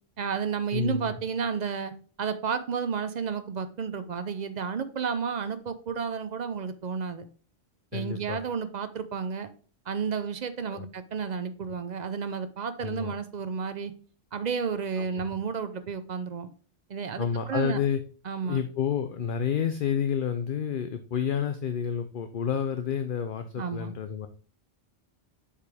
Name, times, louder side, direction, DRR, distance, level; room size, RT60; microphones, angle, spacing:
voice 1, 0.2-1.9 2.2-7.3 7.9-9.5 9.9-13.9 14.3-16.5 16.9-17.8 18.2-18.6 23.5-23.9, right 6 dB, 50° right, 12 dB, 0.6 m, -32 dB
voice 2, 0.7-1.1 7.9-8.4 10.7-10.9 12.8-13.1 15.0-15.2 17.2-18.0 18.4-24.3, left 8 dB, 60° left, 9 dB, 0.7 m, -29 dB
6.6 x 5.0 x 3.4 m, 0.40 s
omnidirectional pair, 1.1 m